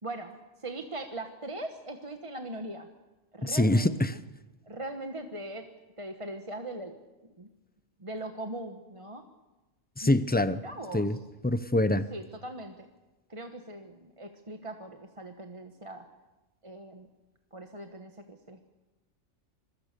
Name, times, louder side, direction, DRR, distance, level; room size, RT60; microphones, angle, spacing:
voice 1, 0.0-2.9 3.3-3.9 4.7-5.7 6.0-7.0 7.4-7.5 8.0-9.2 10.0-10.2 10.6-11.1 12.1-12.8 13.3-16.0 16.6-17.1 17.5-18.6, right 1 dB, 25° right, 5 dB, 1.2 m, -40 dB
voice 2, 3.4-4.1 10.0-10.6 10.9-11.2 11.4-12.0, left 1 dB, 15° left, 13 dB, 0.3 m, -25 dB
26.5 x 22.0 x 6.7 m, 1.1 s
omnidirectional pair, 1.4 m